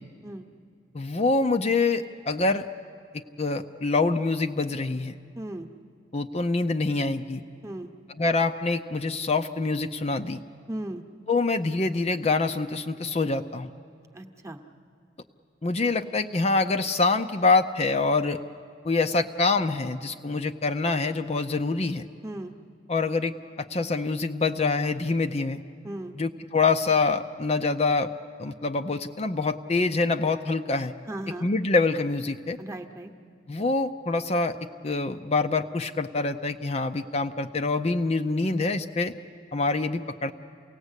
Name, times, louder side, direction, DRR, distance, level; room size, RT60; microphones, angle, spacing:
voice 1, 0.9-2.7 3.4-5.2 6.1-7.4 8.2-10.4 11.3-13.7 15.6-18.4 18.8-22.1 22.9-25.6 26.2-28.1 28.4-30.9 31.4-32.6 33.5-34.6 34.8-39.1 39.5-40.3, left 3 dB, 30° left, 7 dB, 0.5 m, -25 dB
voice 2, 5.3-5.7 7.6-7.9 10.7-11.0 14.1-14.6 22.2-22.5 25.8-26.2 31.1-31.5 32.6-33.1, right 1 dB, 15° right, 3 dB, 1.0 m, -36 dB
28.5 x 18.0 x 8.2 m, 2.4 s
head